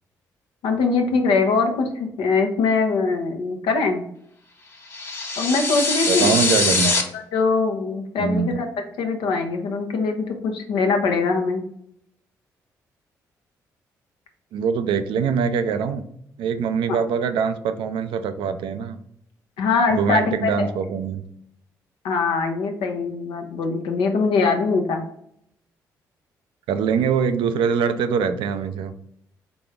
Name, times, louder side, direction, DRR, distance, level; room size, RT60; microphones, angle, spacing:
voice 1, 0.6-4.0 5.4-6.4 6.8-6.9 7.3-8.7 9.0-11.6 16.9-17.0 19.6-20.7 22.0-25.0, left 4 dB, 75° left, 4 dB, 0.8 m, -22 dB
sound 1, 4.9-7.0, left 3 dB, 30° left, 1.2 m, -22 dB
voice 2, 6.1-6.9 8.2-8.6 14.5-16.0 16.4-19.0 19.9-21.2 26.7-28.9, right 6 dB, 70° right, 10 dB, 0.4 m, -23 dB
4.0 x 3.7 x 3.4 m, 0.71 s
hypercardioid pair, 45°, 9 cm